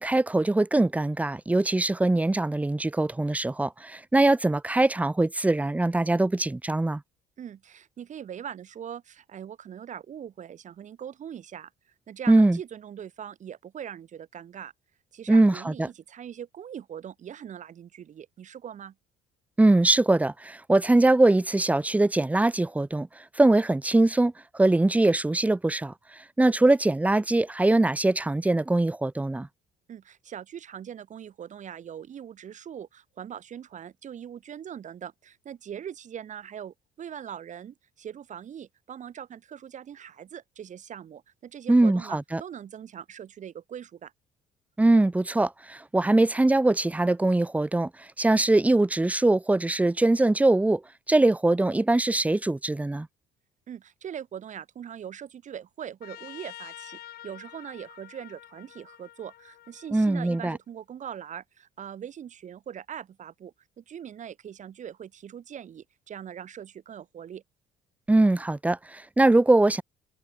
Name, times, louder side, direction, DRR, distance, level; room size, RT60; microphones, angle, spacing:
voice 1, 0.0-7.0 12.3-12.6 15.3-15.9 19.6-25.9 26.4-29.5 41.7-42.4 44.8-50.8 51.1-53.1 59.9-60.6 68.1-69.8, right 2 dB, 10° right, 0.7 m, -22 dB
voice 2, 7.4-11.7 12.1-14.7 15.1-18.9 29.9-44.1 53.7-67.4, right 9 dB, 45° right, 1.7 m, -41 dB
Trumpet, 56.0-60.6, left 13 dB, 65° left, 3.9 m, -47 dB
cardioid pair, 110°, 17 cm